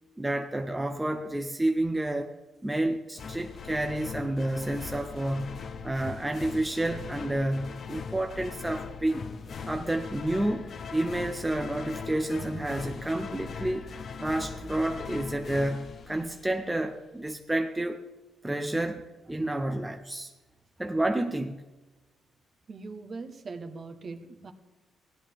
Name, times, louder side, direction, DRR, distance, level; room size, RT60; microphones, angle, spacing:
voice 1, 0.2-2.4 2.6-9.3 9.7-10.7 10.9-13.9 14.2-18.0 18.4-20.3 20.8-21.6, right 1 dB, 10° right, 5 dB, 0.7 m, -30 dB
sound 1, 3.2-16.8, left 5 dB, 50° left, 0.7 m, -40 dB
voice 2, 22.7-24.5, right 4 dB, 45° right, 7 dB, 1.2 m, -41 dB
16.5 x 10.5 x 3.5 m, 1.2 s
cardioid pair, 90°, 0 cm